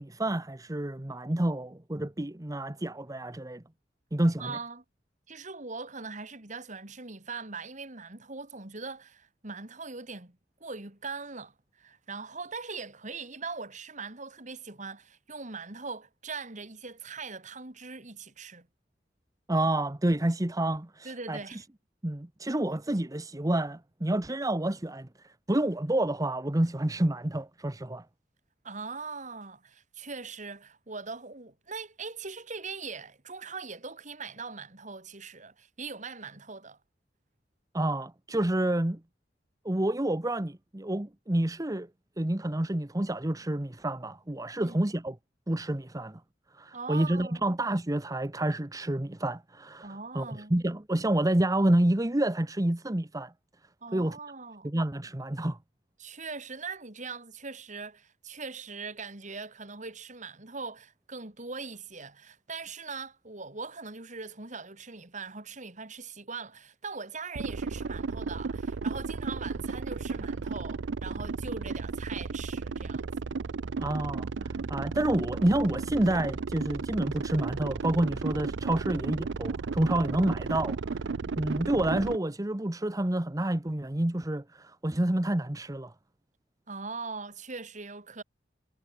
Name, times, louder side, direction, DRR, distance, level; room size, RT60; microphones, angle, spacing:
voice 1, 0.0-3.6 4.1-4.6 19.5-21.6 22.0-28.1 37.7-39.0 39.6-41.9 42.2-45.2 45.5-46.2 46.5-53.3 53.9-54.2 54.6-55.6 73.8-81.0 81.3-85.9, right 1 dB, 20° right, 0.9 m, -29 dB
voice 2, 4.4-4.8 5.3-18.7 21.0-21.6 28.6-36.8 44.6-44.8 46.7-47.4 49.8-50.5 53.8-54.7 56.0-73.1 86.7-88.2, right 4 dB, 40° right, 2.9 m, -41 dB
sound 1, 67.4-82.2, right 4 dB, 70° right, 0.5 m, -34 dB
head